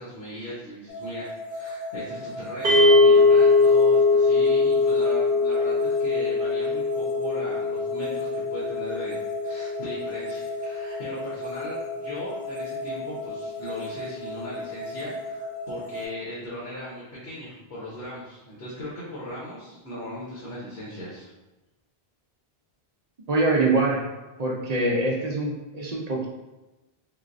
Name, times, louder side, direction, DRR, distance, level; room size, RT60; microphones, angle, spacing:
voice 1, 0.0-21.3, equal, 80° left, -7 dB, 1.1 m, -38 dB
sound 1, 0.9-16.1, left 1 dB, 55° left, 0.6 m, -36 dB
sound 2, 2.6-12.9, left 3 dB, 85° right, 0.9 m, -22 dB
voice 2, 23.3-24.0 24.4-26.3, right 2 dB, 50° right, -1 dB, 0.5 m, -24 dB
3.8 x 2.1 x 2.4 m, 1.1 s
omnidirectional pair, 1.0 m